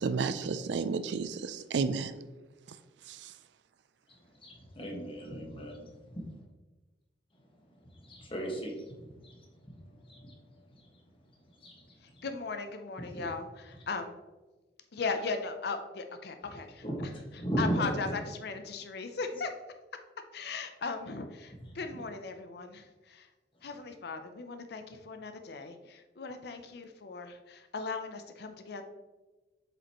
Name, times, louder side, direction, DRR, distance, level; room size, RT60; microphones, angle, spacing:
voice 1, 0.0-2.2 3.1-3.3, right 5 dB, 75° right, 13 dB, 0.4 m, -32 dB
voice 2, 4.4-6.2 8.0-8.7 9.2-9.3 10.1-10.2 11.6-11.7 13.1-13.3 16.8-18.0, right 1 dB, 30° left, -1 dB, 1.5 m, -35 dB
voice 3, 12.0-14.2 14.9-19.5 20.3-23.3 23.6-28.8, left 4 dB, 65° left, 7 dB, 0.6 m, -38 dB
7.7 x 5.1 x 3.0 m, 1.2 s
head